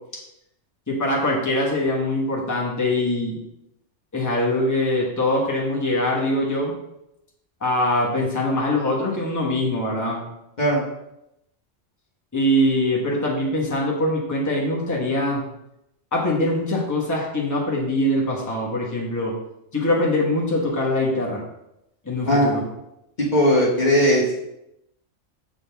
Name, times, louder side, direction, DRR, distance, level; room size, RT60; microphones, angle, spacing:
voice 1, 0.9-3.4 4.1-6.7 7.6-10.3 12.3-15.4 16.1-19.4 19.7-21.4 22.0-22.6, left 1 dB, 15° left, -3 dB, 1.1 m, -23 dB
voice 2, 23.2-24.3, equal, 40° left, -5 dB, 1.1 m, -18 dB
7.2 x 3.9 x 3.5 m, 0.85 s
omnidirectional pair, 1.2 m